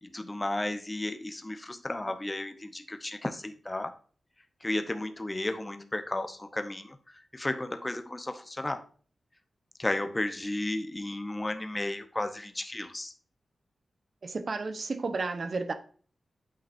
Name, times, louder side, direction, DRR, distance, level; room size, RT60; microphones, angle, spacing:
voice 1, 0.0-3.9 4.6-8.9 9.8-13.1, left 1 dB, 20° left, 0.8 m, -33 dB
voice 2, 14.2-15.7, right 3 dB, 50° right, 1.0 m, -32 dB
8.7 x 5.7 x 2.6 m
wide cardioid pair, 110°, 0 cm